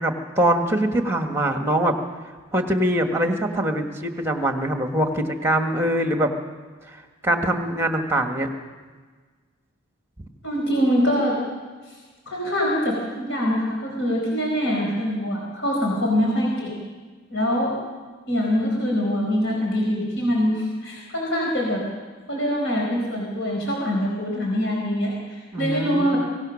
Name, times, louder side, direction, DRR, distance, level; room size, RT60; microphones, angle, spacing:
voice 1, 0.0-1.9 2.5-6.3 7.2-8.5 25.5-26.2, right 1 dB, 10° right, 5 dB, 1.7 m, -23 dB
voice 2, 10.4-11.4 12.3-16.8 17.3-17.7 18.3-21.8 22.3-26.2, equal, 65° left, -2 dB, 4.8 m, -24 dB
24.0 x 17.5 x 6.5 m, 1.4 s
head